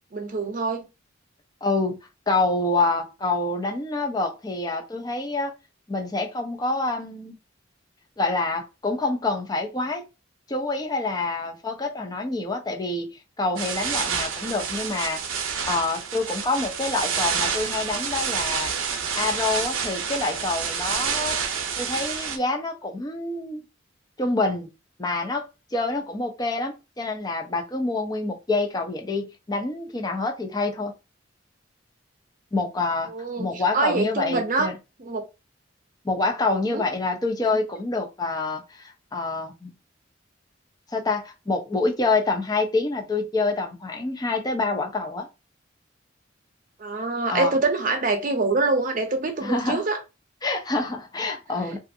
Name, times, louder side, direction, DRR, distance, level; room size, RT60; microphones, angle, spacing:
voice 1, 0.1-0.9 33.1-34.7 35.0-35.2 36.7-36.8 37.4-37.6 46.8-50.0 51.7-51.8, right 3 dB, 40° right, 0.6 m, -25 dB
voice 2, 1.6-2.0 2.3-5.5 5.9-7.3 8.2-10.0 10.5-13.1 13.4-18.7 19.1-21.4 21.8-23.6 24.2-24.7 25.0-30.9 32.5-33.1 33.4-34.8 36.0-39.7 40.9-45.3 47.3-47.5 49.4-49.8 50.4-51.8, left 3 dB, 20° left, 0.5 m, -27 dB
sound 1, 13.6-22.4, right 6 dB, 90° right, 0.5 m, -28 dB
2.5 x 2.4 x 2.6 m
head